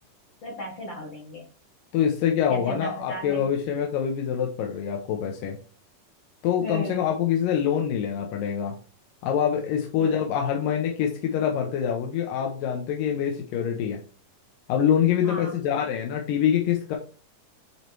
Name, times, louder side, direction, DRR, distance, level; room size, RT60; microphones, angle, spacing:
voice 1, 0.4-1.4 2.5-3.4 6.6-7.1 10.0-10.1 15.2-15.6, equal, 50° left, -2 dB, 1.5 m, -36 dB
voice 2, 1.9-5.6 6.4-8.8 9.2-14.0 14.7-17.0, left 8 dB, 90° left, 1 dB, 2.6 m, -25 dB
8.4 x 3.1 x 4.5 m, 0.38 s
omnidirectional pair, 3.9 m